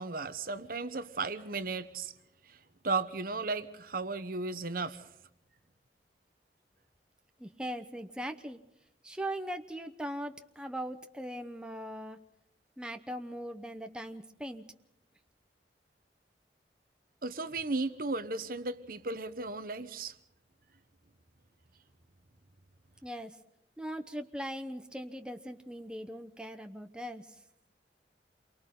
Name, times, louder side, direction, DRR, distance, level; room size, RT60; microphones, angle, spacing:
voice 1, 0.0-2.1 2.4-2.6 2.8-5.1 17.2-20.1, right 3 dB, 50° right, 1.0 m, -35 dB
voice 2, 7.4-8.6 9.0-12.2 12.8-14.6 23.0-23.4 23.8-27.4, equal, 5° right, 1.0 m, -40 dB
29.0 x 23.5 x 3.9 m
head